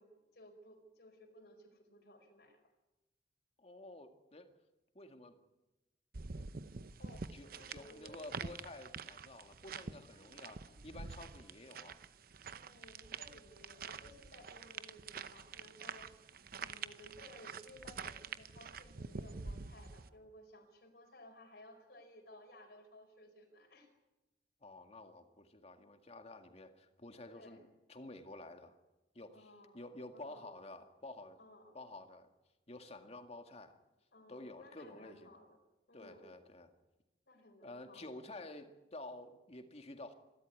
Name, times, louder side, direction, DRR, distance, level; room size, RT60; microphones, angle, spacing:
voice 1, 0.0-2.6 7.0-8.3 10.1-10.3 10.6-10.7 12.5-16.3 16.6-23.9 27.2-27.6 29.3-29.8 30.1-30.5 31.4-31.8 34.1-35.6 35.9-36.3 37.3-38.1, left 1 dB, 70° left, 0 dB, 4.8 m, -58 dB
voice 2, 3.6-4.5 4.9-5.4 7.3-12.0 24.6-28.8 29.1-31.4 31.7-32.3 32.7-33.8 34.3-35.3 35.9-36.7 37.6-40.1, left 2 dB, 35° left, 6 dB, 2.0 m, -51 dB
sound 1, 6.1-20.1, right 5 dB, 55° right, 0.8 m, -47 dB
26.5 x 13.0 x 9.6 m, 1.0 s
head